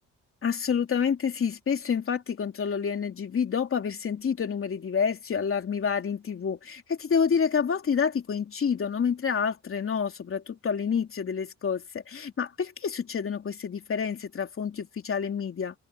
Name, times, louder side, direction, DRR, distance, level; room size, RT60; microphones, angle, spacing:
voice 1, 0.4-15.7, left 6 dB, 45° left, 3.2 m, -28 dB
cardioid pair, 90°, 30 cm